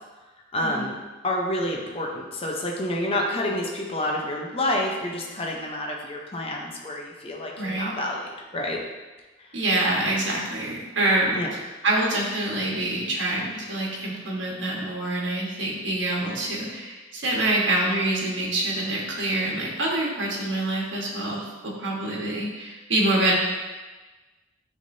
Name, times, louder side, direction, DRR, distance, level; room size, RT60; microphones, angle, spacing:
voice 1, 0.5-1.0 1.2-8.8 9.4-9.5 11.3-11.5, left 1 dB, 30° left, -1 dB, 0.8 m, -28 dB
voice 2, 7.6-7.9 9.5-11.4 11.8-23.3, right 1 dB, 70° right, -3 dB, 1.6 m, -26 dB
9.4 x 3.6 x 2.7 m, 1.2 s
head